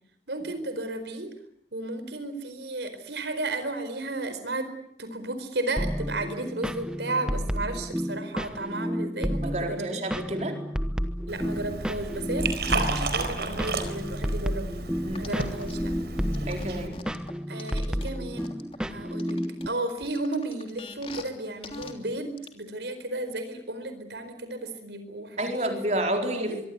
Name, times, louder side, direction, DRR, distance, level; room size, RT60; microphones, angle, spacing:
voice 1, 0.3-1.3 1.7-4.7 5.0-10.5 11.3-14.7 15.2-15.9 17.5-25.8 26.3-26.6, right 2 dB, 85° right, 10 dB, 4.6 m, -34 dB
sound 1, 5.8-19.7, equal, 5° right, 1.1 m, -31 dB
voice 2, 9.4-10.6 15.0-15.3 16.5-16.9 25.4-26.7, right 1 dB, 40° right, 4 dB, 4.3 m, -29 dB
Liquid, 11.3-16.9, right 3 dB, 65° right, 4.4 m, -32 dB
sound 2, 15.1-15.7 16.3-18.8 19.2-21.3 21.6-21.9 22.4-22.5, left 3 dB, 30° left, 3.2 m, -42 dB
24.5 x 23.5 x 9.4 m, 0.69 s
head